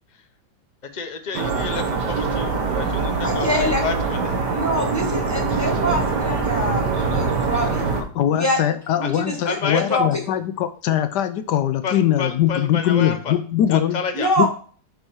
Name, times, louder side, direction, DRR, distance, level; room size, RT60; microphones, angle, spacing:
voice 1, 0.9-4.4 9.0-9.1 9.4-10.0 11.8-13.4 13.7-14.3, left 5 dB, 45° left, 6 dB, 0.5 m, -29 dB
sound 1, 1.3-8.0, right 4 dB, 60° right, 1.8 m, -23 dB
voice 2, 3.2-3.8 4.5-7.8 8.4-8.6 9.0-10.2 14.1-14.5, equal, 10° left, 1 dB, 1.1 m, -25 dB
voice 3, 8.0-14.0 14.4-14.5, left 11 dB, 75° left, 11 dB, 1.0 m, -21 dB
7.2 x 5.3 x 4.5 m, 0.43 s
omnidirectional pair, 2.2 m